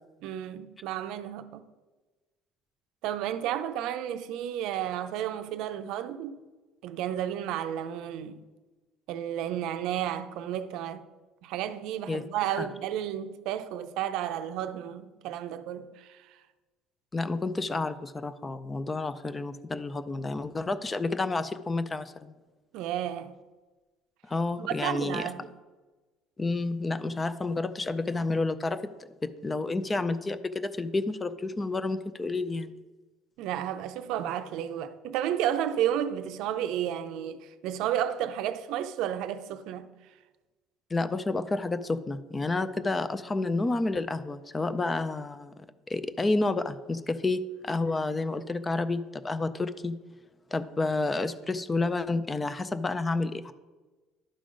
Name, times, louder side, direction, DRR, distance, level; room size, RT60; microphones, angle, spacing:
voice 1, 0.2-1.6 3.0-6.4 6.8-8.4 9.1-11.0 11.4-16.4 22.7-23.3 24.6-25.5 33.4-39.9, right 10 dB, 65° right, 0.5 m, -32 dB
voice 2, 17.1-22.3 24.3-25.3 26.4-28.8 29.2-32.7 40.9-45.6 45.9-50.0 50.5-53.5, left 3 dB, 15° left, 0.3 m, -30 dB
11.5 x 3.8 x 5.0 m
cardioid pair, 150°, 0 cm